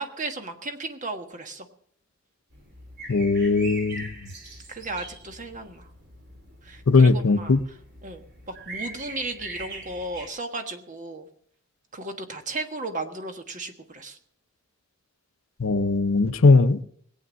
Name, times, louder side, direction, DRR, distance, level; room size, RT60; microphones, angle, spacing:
voice 1, 0.0-1.7 4.7-5.9 6.6-7.6 8.0-11.3 11.9-14.2, right 2 dB, 40° right, 1.5 m, -35 dB
sound 1, 2.5-10.3, right 2 dB, 55° right, 3.5 m, -42 dB
voice 2, 3.1-4.1 6.9-7.6 15.6-16.8, left 3 dB, 80° left, 0.7 m, -19 dB
19.0 x 8.6 x 6.3 m
head